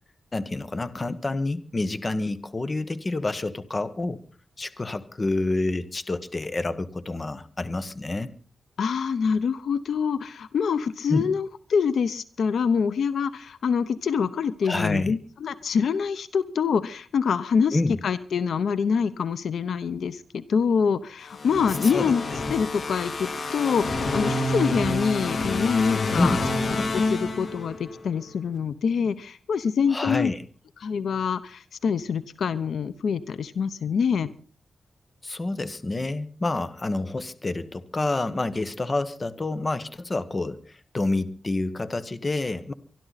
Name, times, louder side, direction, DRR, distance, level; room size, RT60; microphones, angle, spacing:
voice 1, 0.3-4.2 4.6-8.3 11.1-11.3 14.6-15.1 17.7-18.0 21.8-22.1 26.1-26.4 29.9-30.4 35.2-42.7, left 2 dB, 30° left, 13 dB, 1.2 m, -28 dB
voice 2, 8.8-26.4 26.9-30.3 30.8-34.3, left 6 dB, 85° left, 15 dB, 0.8 m, -25 dB
sound 1, 21.3-28.0, left 2 dB, 55° left, 2.7 m, -28 dB
24.5 x 12.0 x 4.1 m, 0.40 s
wide cardioid pair, 115°, 0 cm